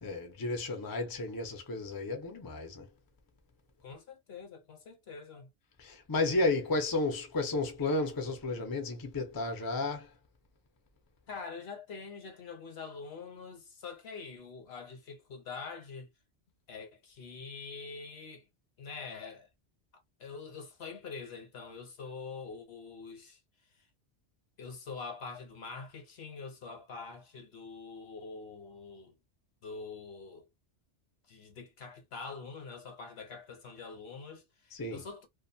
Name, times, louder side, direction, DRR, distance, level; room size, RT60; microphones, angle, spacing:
voice 1, 0.0-2.9 5.8-10.1 34.8-35.0, left 2 dB, 25° left, 0.5 m, -32 dB
voice 2, 3.8-5.5 11.3-16.1 16.7-18.5 18.8-19.5 19.9-23.4 23.7-23.9 24.6-29.2 29.6-30.5 31.3-35.3, left 4 dB, 65° left, 1.0 m, -45 dB
2.5 x 2.3 x 2.6 m
omnidirectional pair, 1.2 m